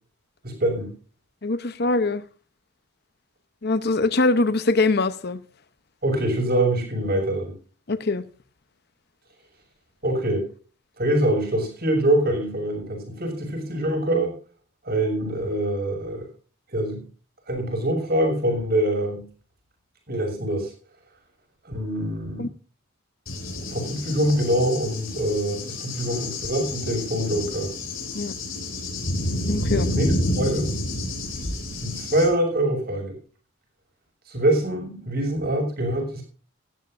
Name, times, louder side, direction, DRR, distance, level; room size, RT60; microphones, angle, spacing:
voice 1, 0.4-0.9 6.0-7.5 10.0-10.4 11.0-14.3 14.8-16.3 16.7-17.0 17.5-19.2 20.1-20.7 21.6-22.5 23.7-27.7 29.8-30.1 30.3-30.8 31.8-33.1 34.3-36.2, right 1 dB, 50° right, 2 dB, 6.7 m, -24 dB
voice 2, 1.4-2.2 3.6-5.4 7.9-8.2 22.4-22.5 28.1-28.3 29.5-29.9, left 3 dB, 50° left, 13 dB, 0.8 m, -22 dB
Cricket / Thunder, 23.3-32.3, left 1 dB, 85° left, 6.1 m, -29 dB
18.0 x 13.5 x 2.6 m, 0.39 s
head